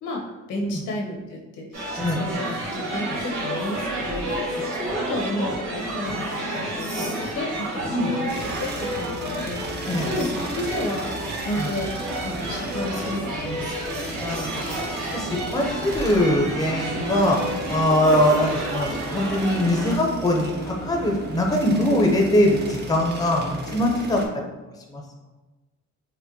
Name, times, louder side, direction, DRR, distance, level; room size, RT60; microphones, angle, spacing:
voice 1, 0.0-4.4 4.8-8.3 8.6-9.6 10.0-11.1 11.4-11.9 12.2-13.7, left 1 dB, 85° left, -2 dB, 0.9 m, -31 dB
sound 1, 1.7-20.0, right 1 dB, 75° right, 1.1 m, -30 dB
voice 2, 2.0-2.3 7.9-8.2 9.9-10.2 11.6-11.7 14.0-14.6 15.1-17.4 17.7-24.2 24.9-25.0, left 1 dB, 15° left, 0 dB, 0.6 m, -22 dB
sound 2, 8.3-24.3, right 2 dB, 35° right, 0.6 m, -36 dB
4.3 x 2.2 x 2.7 m, 1.1 s
cardioid pair, 90°, 30 cm